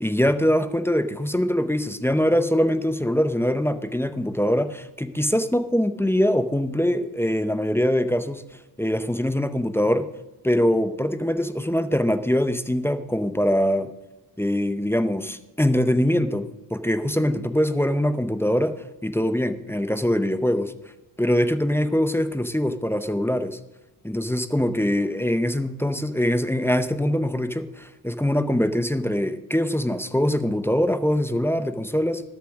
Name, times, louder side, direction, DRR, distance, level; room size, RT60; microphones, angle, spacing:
voice 1, 0.0-8.4 8.8-10.1 10.4-13.9 14.4-18.7 19.0-20.7 21.2-23.6 24.0-32.2, equal, 5° left, 11 dB, 0.6 m, -23 dB
12.5 x 7.2 x 6.2 m, 1.0 s
cardioid pair, 95°, 43 cm